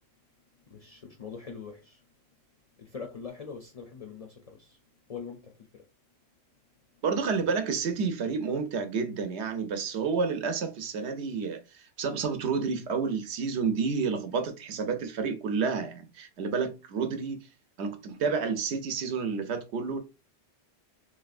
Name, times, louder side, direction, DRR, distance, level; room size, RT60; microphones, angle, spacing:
voice 1, 0.7-2.0 2.8-4.8 5.1-5.9, left 5 dB, 55° left, 0.4 m, -43 dB
voice 2, 7.0-17.4 17.8-20.0, right 5 dB, 85° right, 0.9 m, -30 dB
3.2 x 2.6 x 2.4 m
omnidirectional pair, 1.1 m